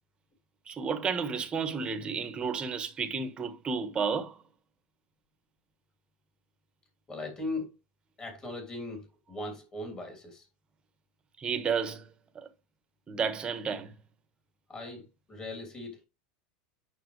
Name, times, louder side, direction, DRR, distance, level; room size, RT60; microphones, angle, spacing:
voice 1, 0.7-4.4 11.4-12.0 12.3-12.5 13.1-13.9, right 5 dB, 20° right, 1.4 m, -32 dB
voice 2, 7.1-7.7 8.2-10.5 14.7-16.0, left 2 dB, 20° left, 3.4 m, -39 dB
8.9 x 6.0 x 3.3 m
supercardioid pair, 140°, 5 cm